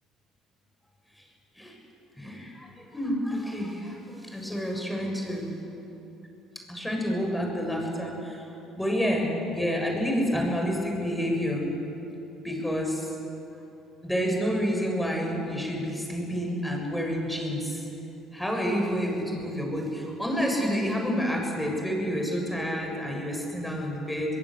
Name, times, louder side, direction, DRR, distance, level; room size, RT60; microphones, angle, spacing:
voice 1, 2.2-5.5 6.7-8.4 8.8-11.8 12.4-13.1 14.0-17.8 18.3-24.4, equal, 5° left, 0 dB, 7.3 m, -29 dB
24.0 x 22.0 x 8.1 m, 2.9 s
hypercardioid pair, 55°, 0 cm